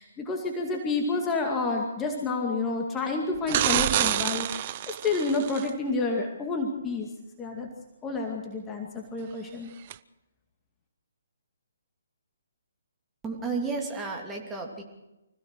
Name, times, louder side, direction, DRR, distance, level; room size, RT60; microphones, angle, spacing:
voice 1, 0.0-7.1 7.4-7.7 8.0-9.7, left 3 dB, 15° left, 1 dB, 2.4 m, -29 dB
sound 1, 3.5-5.7 9.9-10.0, right 13 dB, 35° right, 0.6 m, -27 dB
voice 2, 13.2-14.8, right 4 dB, 10° right, 0 dB, 2.8 m, -32 dB
25.5 x 16.0 x 6.4 m, 0.98 s
figure-of-eight pair, 135°, 0 cm